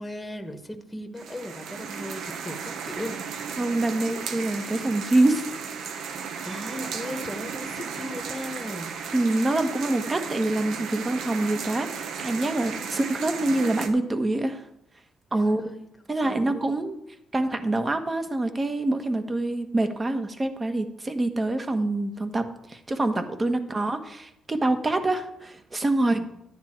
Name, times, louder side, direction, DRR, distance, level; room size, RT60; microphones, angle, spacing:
voice 1, 0.0-3.2 6.4-8.9 9.9-10.0 12.7-13.0 15.3-16.9 23.6-23.7 26.0-26.3, left 1 dB, 10° left, 6 dB, 1.4 m, -38 dB
sound 1, 1.2-13.9, right 6 dB, 75° right, 1.4 m, -35 dB
voice 2, 3.6-5.4 9.1-14.7 15.3-15.6 16.1-16.9 17.3-26.2, right 2 dB, 25° right, 8 dB, 1.4 m, -25 dB
12.0 x 9.6 x 4.6 m, 0.79 s
cardioid pair, 90°, 0 cm